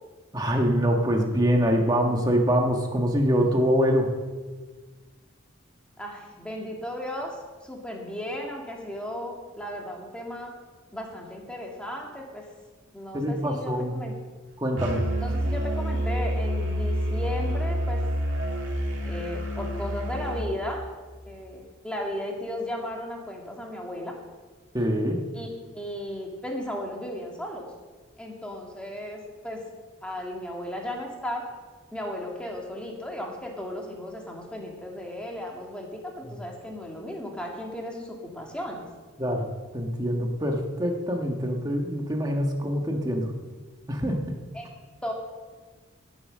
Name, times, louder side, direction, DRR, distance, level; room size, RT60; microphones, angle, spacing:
voice 1, 0.3-4.1 13.1-13.9 14.6-15.1 24.7-25.2 39.2-39.4 39.7-43.3 43.9-44.4, equal, 20° right, 2 dB, 1.4 m, -24 dB
voice 2, 6.0-7.4 7.6-10.5 10.9-12.4 12.9-14.1 15.2-18.0 19.1-20.8 21.3-24.1 25.3-27.7 28.2-29.6 30.0-31.5 31.9-38.9 44.5-44.7 45.0-45.1, left 1 dB, 5° left, -1 dB, 2.0 m, -35 dB
Musical instrument, 14.8-20.4, equal, 65° right, 2.4 m, -28 dB
17.0 x 7.2 x 6.5 m, 1.4 s
head